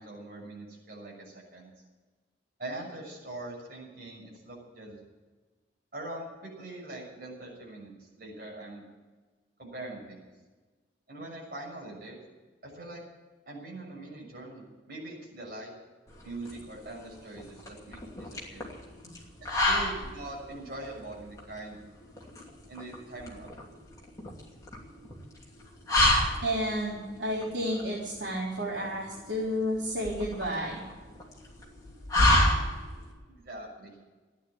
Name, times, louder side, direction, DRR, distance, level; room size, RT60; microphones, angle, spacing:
voice 1, 0.0-1.7 2.6-5.0 5.9-8.8 9.6-10.3 11.1-12.2 12.6-13.0 13.5-15.7 16.2-18.7 19.4-21.8 22.7-23.5 32.1-32.5 33.3-33.9, right 2 dB, 50° right, -3 dB, 6.5 m, -42 dB
sound 1, 16.1-33.1, left 1 dB, 20° left, 2.8 m, -30 dB
voice 2, 26.4-30.8, equal, 75° right, -7 dB, 3.9 m, -31 dB
14.5 x 10.0 x 8.8 m, 1.3 s
head